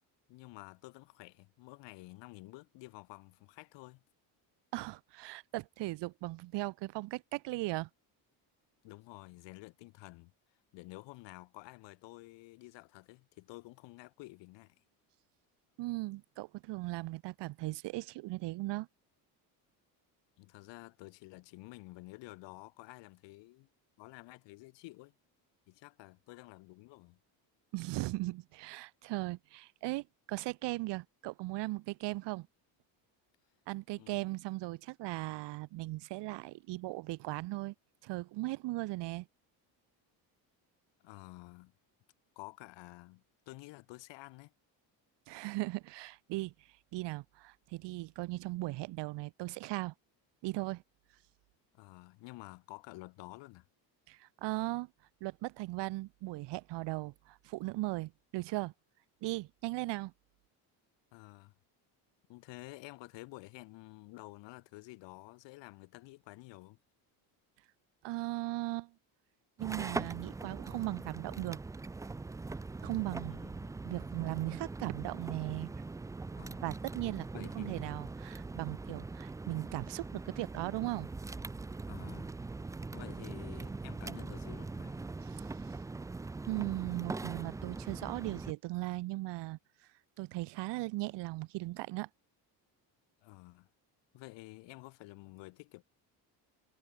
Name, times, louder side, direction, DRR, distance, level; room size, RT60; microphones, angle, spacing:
voice 1, 0.3-4.0 8.8-10.3 10.7-14.8 20.4-23.7 24.0-25.1 25.7-27.2 33.9-34.3 41.0-41.7 42.4-44.5 51.7-53.7 61.1-61.5 62.3-66.8 73.3-73.7 76.3-76.7 77.3-78.0 81.9-82.3 82.9-85.1 93.2-93.7 94.1-95.8, left 21 dB, 80° left, 4.2 m, -51 dB
voice 2, 4.7-7.9 15.8-18.9 27.7-32.5 33.7-37.7 38.0-39.3 45.3-46.5 46.9-49.9 50.4-50.8 54.1-54.9 55.2-58.7 59.2-60.1 68.0-68.9 69.6-71.6 72.8-73.4 73.8-75.7 76.6-81.1 85.2-85.4 86.5-89.6 90.2-92.1, right 20 dB, 75° right, 2.1 m, -38 dB
sound 1, 69.6-88.5, right 3 dB, 10° right, 0.4 m, -42 dB
cardioid pair, 145°, 43 cm